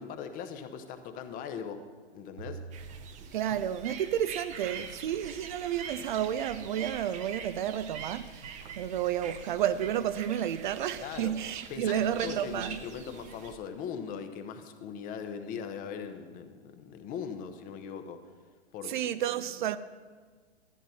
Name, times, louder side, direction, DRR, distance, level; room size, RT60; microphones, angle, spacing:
voice 1, 0.0-1.8 2.1-2.6 11.0-11.3 11.7-18.2 18.7-18.9, left 7 dB, 25° left, 0.9 m, -40 dB
sound 1, 1.1-1.5 1.8-1.9 2.4-3.2 3.5-4.0 4.8-4.9 5.2-5.5 6.0-11.6, right 6 dB, 90° right, 0.6 m, -49 dB
sound 2, 2.7-13.6, right 7 dB, 20° right, 0.8 m, -44 dB
voice 2, 3.3-12.8 18.8-19.8, right 10 dB, 45° right, 0.5 m, -31 dB
13.5 x 8.9 x 5.6 m
hypercardioid pair, 120°, 34 cm